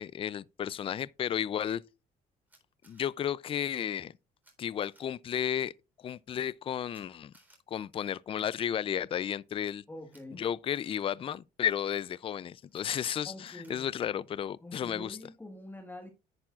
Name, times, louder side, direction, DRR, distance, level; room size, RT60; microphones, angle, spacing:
voice 1, 0.0-1.8 2.9-4.1 4.6-5.7 6.0-7.3 7.7-9.8 10.3-15.2, left 9 dB, 35° left, 0.4 m, -33 dB
Camera, 2.5-3.0 4.4-4.5 4.8-5.0 6.9-7.0 7.3-7.6 10.1-10.2 10.7-11.0 12.7-12.8 13.4-13.7, right 1 dB, 10° right, 3.7 m, -61 dB
voice 2, 9.9-10.5 13.2-13.9 14.6-16.1, left 1 dB, 10° left, 1.5 m, -45 dB
10.5 x 8.5 x 2.4 m
cardioid pair, 110°, 17 cm